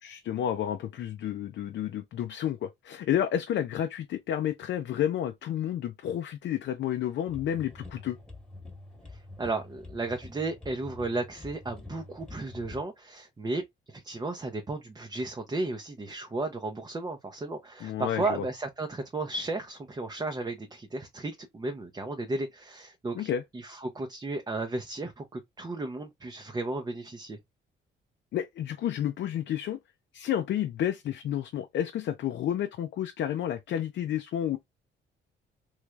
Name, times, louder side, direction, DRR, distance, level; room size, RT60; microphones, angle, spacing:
voice 1, 0.0-8.2 17.8-18.4 23.1-23.4 28.3-29.8 30.1-34.6, left 10 dB, 65° left, 0.5 m, -30 dB
sound 1, 7.3-12.8, left 2 dB, 5° left, 1.2 m, -46 dB
voice 2, 9.1-13.6 13.9-27.4, right 2 dB, 20° right, 0.6 m, -34 dB
3.2 x 3.1 x 2.3 m
cardioid pair, 90°, 20 cm